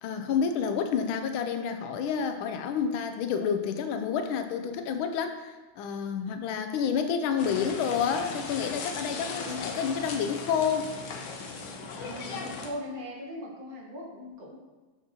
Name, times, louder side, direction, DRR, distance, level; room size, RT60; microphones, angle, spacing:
voice 1, 0.0-10.9, left 7 dB, 85° left, 7 dB, 1.4 m, -29 dB
sound 1, 7.4-12.7, left 4 dB, 65° left, 1.3 m, -37 dB
voice 2, 9.3-9.6 11.9-14.6, left 1 dB, 50° right, -2 dB, 1.4 m, -40 dB
6.9 x 5.9 x 2.9 m, 1.3 s
omnidirectional pair, 2.2 m